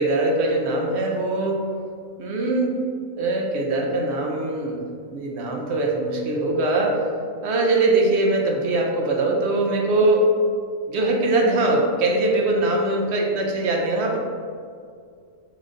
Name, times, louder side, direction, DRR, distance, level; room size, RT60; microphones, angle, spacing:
voice 1, 0.0-1.7 2.2-2.8 3.2-4.8 5.1-7.0 7.4-10.3 10.9-14.2, right 2 dB, 65° right, 0 dB, 0.7 m, -22 dB
3.8 x 3.2 x 3.7 m, 2.2 s
omnidirectional pair, 1.5 m